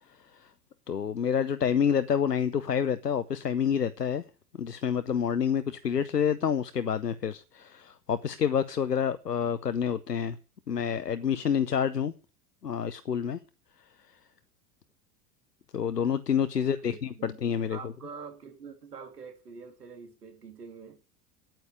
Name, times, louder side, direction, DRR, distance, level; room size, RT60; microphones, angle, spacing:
voice 1, 0.9-4.2 4.6-10.4 10.7-12.1 12.6-13.4 15.7-17.8, left 8 dB, 85° left, 0.8 m, -28 dB
voice 2, 16.5-17.4 17.7-21.0, right 5 dB, 75° right, 2.6 m, -45 dB
9.4 x 9.0 x 9.4 m
figure-of-eight pair, 80°, 47 cm